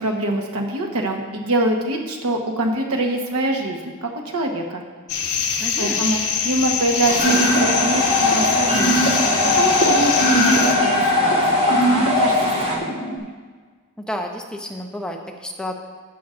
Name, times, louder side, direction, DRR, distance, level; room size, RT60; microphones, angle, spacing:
voice 1, 0.0-4.8 5.8-9.1 9.4-12.9, right 1 dB, 80° right, 2 dB, 1.2 m, -24 dB
sound 1, 5.1-10.7, left 6 dB, 80° left, 1.1 m, -24 dB
voice 2, 5.6-6.0 14.0-15.8, left 1 dB, 5° left, 2 dB, 0.7 m, -30 dB
sound 2, 7.1-12.8, right 1 dB, 25° right, 1.6 m, -26 dB
sound 3, 7.2-13.2, left 1 dB, 45° left, 2.1 m, -20 dB
13.0 x 8.9 x 2.5 m, 1.5 s
head